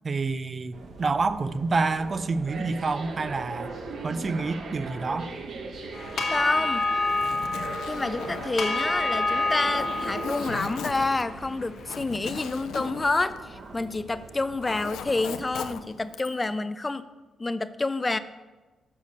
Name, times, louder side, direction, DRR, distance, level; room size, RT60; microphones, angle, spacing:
voice 1, 0.0-3.8 4.0-5.3, right 3 dB, 40° right, 14 dB, 0.4 m, -28 dB
sound 1, 0.7-15.7, right 3 dB, 65° right, 1.0 m, -40 dB
sound 2, 5.9-12.3, left 3 dB, 60° left, 1.2 m, -29 dB
voice 2, 6.3-6.9 7.8-17.1 17.4-18.2, left 2 dB, 25° left, 14 dB, 0.4 m, -28 dB
Zipper (clothing), 7.0-14.1 14.4-16.5, left 8 dB, 90° left, 0.4 m, -39 dB
6.5 x 5.4 x 6.4 m, 1.2 s
cardioid pair, 75°, 0 cm